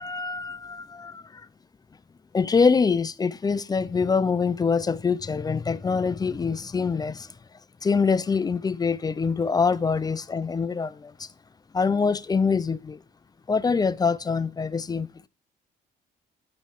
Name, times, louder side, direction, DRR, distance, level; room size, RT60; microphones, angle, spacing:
voice 1, 0.0-1.4 2.3-7.3 7.8-11.3 11.7-13.0 13.5-15.3, left 5 dB, 20° left, 0.3 m, -24 dB
9.0 x 3.1 x 4.5 m
cardioid pair, 90°, 20 cm